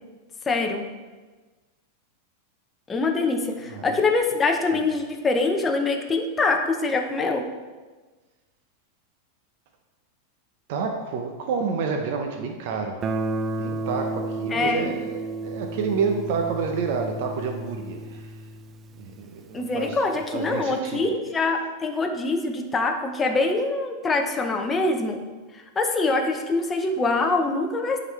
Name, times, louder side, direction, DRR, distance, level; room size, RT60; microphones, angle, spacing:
voice 1, 0.5-0.8 2.9-7.4 14.5-14.9 19.5-25.2 25.5-28.0, left 3 dB, 15° left, 3 dB, 0.7 m, -24 dB
voice 2, 3.7-4.0 10.7-13.0 13.6-18.3 18.9-20.0 20.3-21.0, right 5 dB, 60° right, 3 dB, 0.7 m, -29 dB
Guitar, 13.0-19.7, right 2 dB, 25° right, 0.3 m, -32 dB
8.9 x 3.9 x 3.1 m, 1.3 s
supercardioid pair, 145°, 0 cm